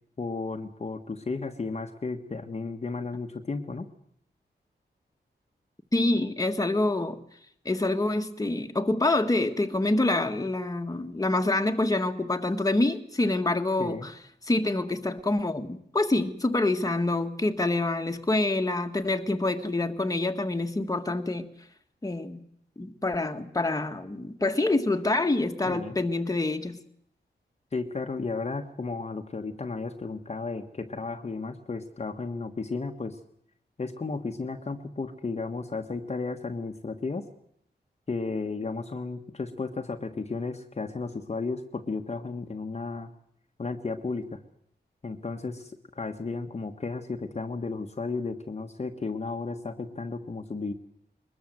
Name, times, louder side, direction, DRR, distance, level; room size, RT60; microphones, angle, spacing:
voice 1, 0.2-3.9 13.8-14.1 25.6-26.0 27.7-33.2 33.8-37.2 38.1-43.1 43.6-44.4 45.0-50.7, left 3 dB, 35° left, 4 dB, 1.4 m, -34 dB
voice 2, 5.9-7.2 7.6-14.1 14.5-21.5 22.0-22.5 22.8-26.8, left 2 dB, 20° left, 5 dB, 1.7 m, -26 dB
22.5 x 21.0 x 7.9 m, 0.68 s
wide cardioid pair, 115°, 18 cm